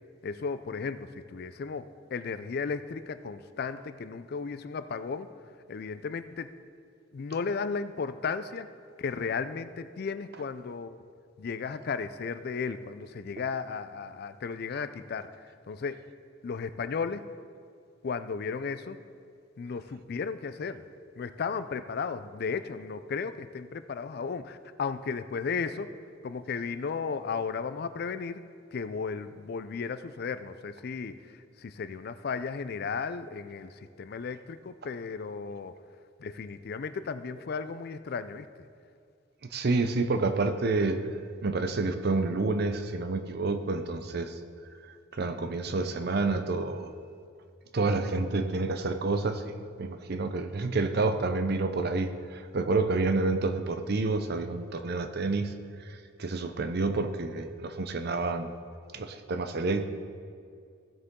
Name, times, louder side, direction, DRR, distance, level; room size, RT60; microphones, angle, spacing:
voice 1, 0.2-5.3 5.7-6.5 7.1-8.7 9.0-11.0 11.4-15.3 15.7-16.0 16.4-17.2 18.0-19.0 19.6-20.8 21.2-25.9 26.2-28.4 28.7-31.1 31.6-35.7 36.2-38.5, left 5 dB, 55° left, 12 dB, 0.4 m, -34 dB
voice 2, 39.5-41.0 41.4-44.4 45.1-46.9 47.7-55.5 55.9-58.5 58.9-59.8, right 3 dB, 55° right, 9 dB, 0.6 m, -29 dB
15.0 x 6.7 x 3.7 m, 2.3 s
head